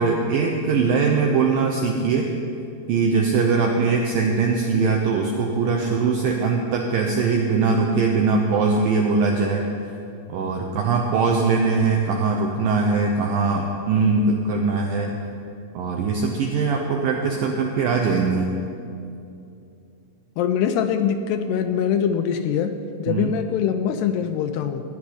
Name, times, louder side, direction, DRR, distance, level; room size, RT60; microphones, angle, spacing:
voice 1, 0.0-2.3 2.9-9.6 10.3-15.1 15.7-18.6 23.1-23.4, right 4 dB, 80° right, 2 dB, 2.0 m, -21 dB
voice 2, 20.4-22.7 23.0-24.8, left 8 dB, 80° left, 7 dB, 2.5 m, -23 dB
17.0 x 5.9 x 10.0 m, 2.6 s
omnidirectional pair, 5.1 m